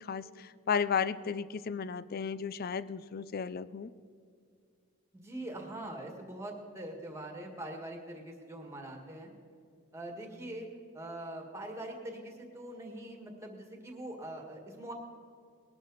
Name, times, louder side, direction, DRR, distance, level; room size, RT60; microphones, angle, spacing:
voice 1, 0.0-3.9, left 6 dB, 45° left, 17 dB, 0.4 m, -34 dB
voice 2, 5.1-9.3 9.9-10.7 10.9-14.9, right 1 dB, 15° right, 2 dB, 1.7 m, -43 dB
20.0 x 11.5 x 4.1 m, 2.3 s
head